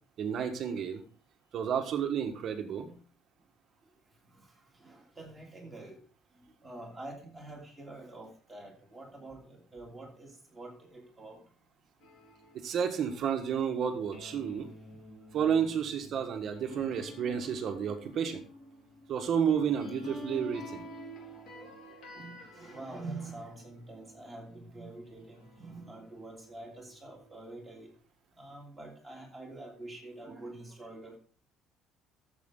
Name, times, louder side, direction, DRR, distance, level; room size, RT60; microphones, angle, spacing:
voice 1, 0.2-1.0 1.5-2.9 12.5-14.7 15.3-18.4 19.1-20.8, right 8 dB, 40° right, 6 dB, 1.6 m, -31 dB
voice 2, 4.8-6.0 6.6-11.4 21.3-27.9 28.4-31.2, right 2 dB, 5° right, -2 dB, 2.9 m, -46 dB
sound 1, 12.0-24.5 25.0-27.9, left 1 dB, 50° left, 4.5 m, -49 dB
13.5 x 7.6 x 3.8 m, 0.41 s
cardioid pair, 170°, 0 cm